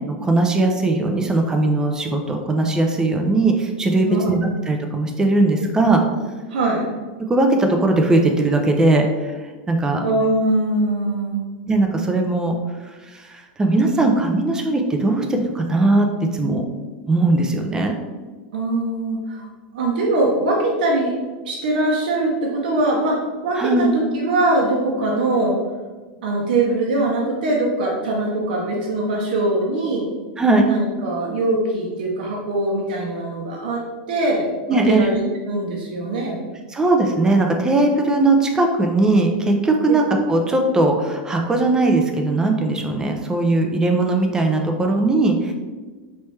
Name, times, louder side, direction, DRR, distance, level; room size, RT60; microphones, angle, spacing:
voice 1, 0.1-4.4 4.7-6.0 7.3-9.3 9.7-10.0 11.7-12.6 13.0-16.6 17.1-18.0 23.6-23.9 30.4-30.7 34.7-35.2 36.7-45.5, right 2 dB, 15° right, 3 dB, 0.5 m, -19 dB
voice 2, 6.5-6.9 10.0-11.4 18.5-19.5 19.7-21.1 21.4-25.6 26.2-30.0 30.6-33.8 34.1-35.2 35.5-36.5 39.9-40.0, right 2 dB, 80° right, -2 dB, 0.8 m, -22 dB
4.3 x 3.3 x 3.1 m, 1.3 s
supercardioid pair, 135°, 5 cm